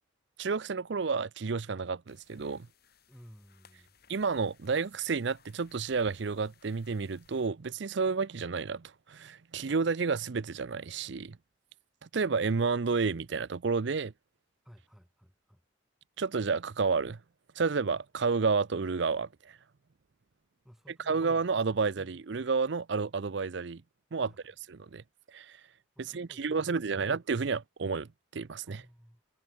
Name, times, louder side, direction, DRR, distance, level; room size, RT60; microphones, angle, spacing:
voice 1, 0.4-2.7 4.1-11.4 12.1-14.1 16.2-17.2 17.6-19.6 21.0-23.8 24.1-24.3 24.7-25.0 25.3-25.6 26.0-28.8, right 4 dB, 60° right, 0.6 m, -30 dB
sound 1, 2.1-7.5, left 5 dB, 50° left, 6.9 m, -63 dB
voice 2, 3.1-4.0 14.6-15.6 20.6-21.3 24.2-24.4 26.0-27.1 28.7-29.2, equal, ahead, 7.4 m, -56 dB
head